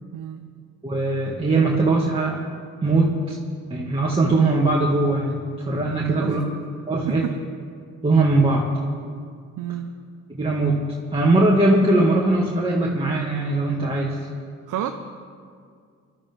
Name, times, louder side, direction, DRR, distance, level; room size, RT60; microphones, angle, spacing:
voice 1, 0.1-0.6 6.2-6.5 7.1-7.4 9.6-10.0 14.7-14.9, right 11 dB, 85° right, 5 dB, 0.8 m, -30 dB
voice 2, 0.8-2.4 2.8-3.4 3.7-6.4 6.9-7.3 8.0-8.7 10.3-14.3, right 2 dB, 20° right, -4 dB, 2.0 m, -20 dB
23.0 x 13.0 x 3.7 m, 2.1 s
cardioid pair, 90°, 30 cm